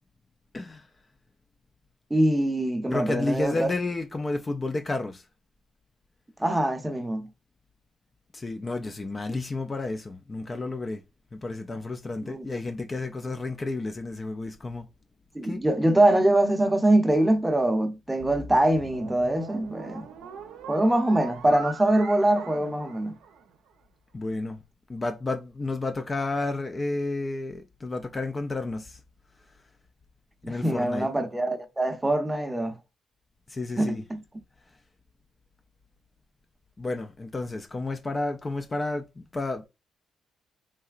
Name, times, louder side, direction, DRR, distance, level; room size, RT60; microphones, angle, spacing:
voice 1, 0.5-0.9 2.9-5.2 8.3-11.0 11.3-14.9 15.4-15.6 24.1-24.6 24.9-29.0 30.5-31.1 33.5-34.0 36.8-39.7, left 2 dB, 25° left, 0.3 m, -31 dB
voice 2, 2.1-3.7 6.4-7.3 12.2-12.5 15.3-20.1 20.7-23.2 30.4-32.8 33.8-34.2, right 1 dB, 10° right, 0.6 m, -23 dB
sound 1, 18.2-23.7, right 5 dB, 85° right, 0.5 m, -42 dB
3.2 x 2.7 x 2.4 m
cardioid pair, 90°, 0 cm